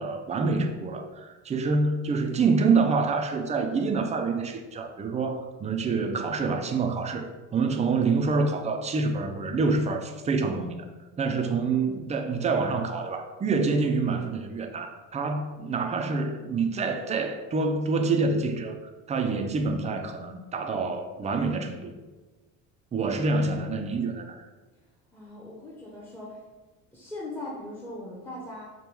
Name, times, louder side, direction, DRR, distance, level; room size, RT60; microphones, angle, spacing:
voice 1, 0.0-10.7 11.2-18.7 19.1-22.0 22.9-24.4, right 4 dB, 20° right, 5 dB, 0.4 m, -27 dB
voice 2, 25.1-26.4 26.9-28.7, left 1 dB, 5° left, -5 dB, 0.7 m, -40 dB
5.2 x 2.2 x 4.5 m, 1.2 s
cardioid pair, 130°, 36 cm